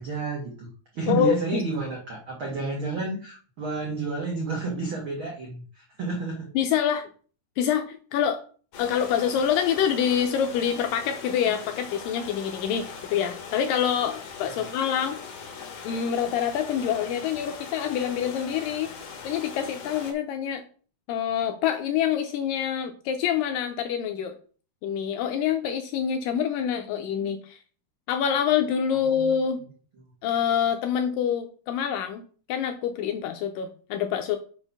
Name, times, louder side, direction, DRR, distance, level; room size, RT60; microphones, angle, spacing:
voice 1, 0.0-6.5 14.4-14.6 28.9-29.3, right 3 dB, 75° right, -1 dB, 1.1 m, -31 dB
voice 2, 1.1-1.6 6.6-7.1 7.6-8.4 8.8-12.9 13.1-15.2 15.8-18.9 19.2-20.6 21.1-24.4 24.8-27.6 28.1-29.6 30.2-32.2 32.5-34.4, left 8 dB, 85° left, 6 dB, 2.0 m, -26 dB
sound 1, 8.7-20.1, left 6 dB, 65° left, 1.9 m, -40 dB
5.8 x 4.6 x 5.4 m, 0.42 s
omnidirectional pair, 4.4 m